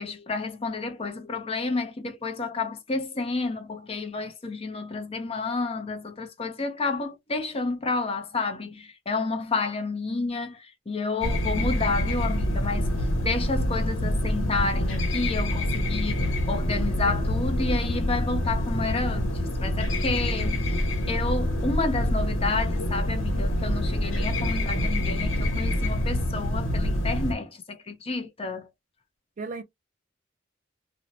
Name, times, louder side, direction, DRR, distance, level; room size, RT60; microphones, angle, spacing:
voice 1, 0.0-19.3 19.6-28.7, left 3 dB, 30° left, 0.6 m, -30 dB
sound 1, 11.2-27.3, left 1 dB, 90° left, 1.0 m, -26 dB
voice 2, 24.5-25.0 29.4-29.6, right 3 dB, 40° right, 0.4 m, -37 dB
2.6 x 2.1 x 2.8 m
head